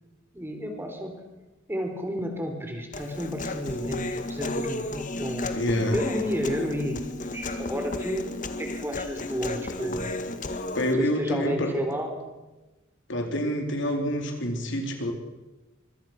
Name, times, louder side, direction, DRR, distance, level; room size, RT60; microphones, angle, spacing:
voice 1, 0.3-1.1 1.7-5.5 5.9-7.0 7.3-8.3 8.6-10.1 11.0-12.2, equal, 10° right, 4 dB, 4.1 m, -31 dB
Human voice, 2.9-10.9, left 2 dB, 40° left, 1.8 m, -33 dB
voice 2, 5.5-6.0 10.7-11.7 13.1-15.1, equal, 60° left, 3 dB, 4.0 m, -27 dB
25.5 x 23.0 x 6.1 m, 1.1 s
head